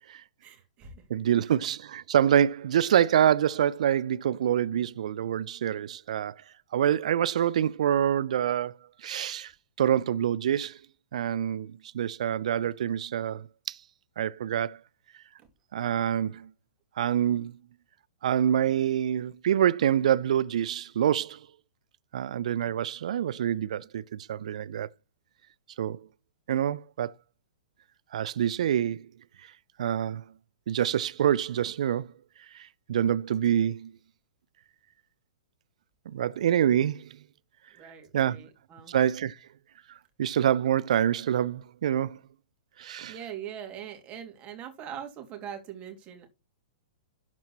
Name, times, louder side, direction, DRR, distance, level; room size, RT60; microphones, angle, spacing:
voice 1, 0.4-1.1 1.4-1.5 15.4-15.5 37.7-39.0 43.1-46.3, right 9 dB, 30° right, 2.6 m, -42 dB
voice 2, 1.1-6.4 6.7-9.5 9.8-10.8 11.1-13.8 14.2-14.8 15.7-16.5 17.0-17.6 18.2-21.5 22.1-24.9 25.8-26.1 26.5-27.1 28.1-29.0 29.8-30.2 30.7-32.1 32.5-33.9 36.1-37.2 38.1-38.4 38.9-39.4 40.2-42.2 42.8-43.1, right 10 dB, 65° right, 0.5 m, -26 dB
12.0 x 4.5 x 4.2 m
figure-of-eight pair, 115°, 4 cm